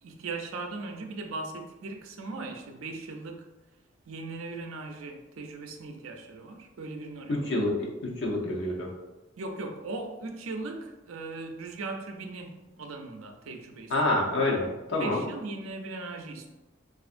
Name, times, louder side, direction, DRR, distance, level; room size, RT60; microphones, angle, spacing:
voice 1, 0.0-3.5 4.1-7.5 9.4-14.3 15.0-16.5, right 3 dB, 90° right, 3 dB, 0.5 m, -39 dB
voice 2, 7.3-8.9 13.9-15.3, left 2 dB, 60° left, -2 dB, 0.7 m, -27 dB
4.2 x 2.5 x 2.5 m, 1.1 s
head